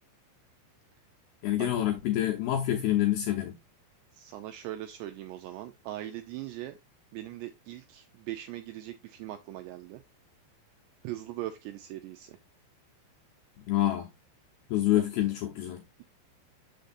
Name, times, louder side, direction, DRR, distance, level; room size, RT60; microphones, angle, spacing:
voice 1, 1.4-3.5 13.7-14.1 14.7-15.8, left 13 dB, 85° left, 2.1 m, -27 dB
voice 2, 4.1-6.8 7.1-10.0 11.0-12.4 14.9-15.0, right 14 dB, 85° right, 2.4 m, -40 dB
6.6 x 6.5 x 2.5 m
omnidirectional pair, 5.3 m